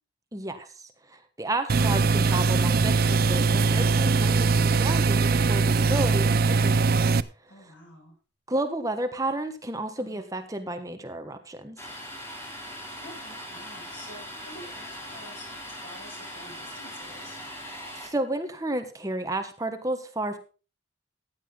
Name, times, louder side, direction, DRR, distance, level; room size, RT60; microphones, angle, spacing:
voice 1, 0.3-0.7 1.1-7.2 8.5-11.8 18.0-20.4, right 1 dB, 20° right, 7 dB, 1.3 m, -32 dB
sound 1, 1.7-7.2, right 4 dB, 50° right, 0.5 m, -21 dB
sound 2, 2.8-6.9, left 1 dB, 50° left, 5.2 m, -50 dB
voice 2, 7.5-8.1 10.0-10.3 13.0-17.4, left 1 dB, 85° left, 1 dB, 6.5 m, -48 dB
Domestic sounds home sounds, 11.8-18.1, equal, 15° left, 3.2 m, -40 dB
15.0 x 10.0 x 3.9 m, 0.35 s
head